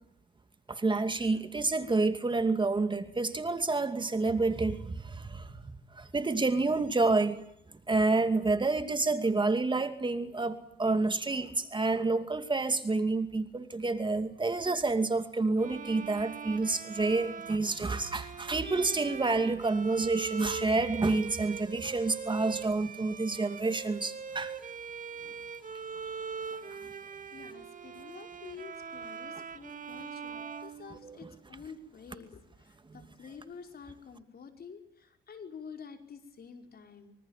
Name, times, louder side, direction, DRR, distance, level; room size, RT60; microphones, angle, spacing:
voice 1, 0.7-5.5 6.0-7.4 7.9-24.5 30.4-30.6 31.0-31.3, right 3 dB, 25° right, 8 dB, 2.5 m, -29 dB
Bowed string instrument, 15.6-31.5, right 6 dB, 40° right, 2.1 m, -42 dB
voice 2, 27.3-37.2, left 6 dB, 50° left, 5 dB, 5.3 m, -49 dB
26.0 x 24.5 x 7.4 m, 0.76 s
cardioid pair, 90°, 20 cm